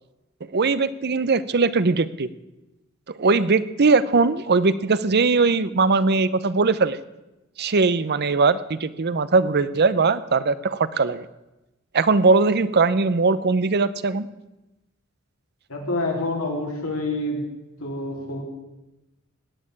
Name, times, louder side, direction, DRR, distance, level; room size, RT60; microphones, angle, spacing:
voice 1, 0.5-2.3 3.2-7.0 7.6-11.2 11.9-14.3, right 4 dB, 50° right, 16 dB, 0.7 m, -20 dB
voice 2, 15.7-17.5 17.8-18.4, left 2 dB, 85° left, 0 dB, 3.8 m, -27 dB
17.5 x 6.7 x 9.7 m, 1.0 s
head